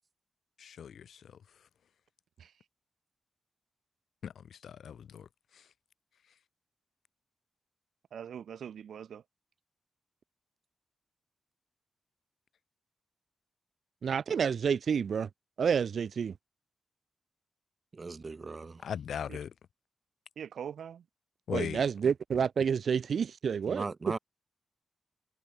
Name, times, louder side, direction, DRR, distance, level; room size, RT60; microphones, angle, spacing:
voice 1, 0.6-1.4 4.2-5.7 18.8-19.5 21.5-21.8, left 8 dB, 70° left, 2.3 m, -39 dB
voice 2, 8.1-9.2 19.3-19.4 20.4-21.1, right 8 dB, 80° right, 2.3 m, -42 dB
voice 3, 14.0-15.3 15.6-16.3 21.5-23.8, right 7 dB, 55° right, 0.4 m, -29 dB
voice 4, 17.9-18.8 23.7-24.2, right 4 dB, 30° right, 2.0 m, -38 dB
wide cardioid pair, 170°, 0 cm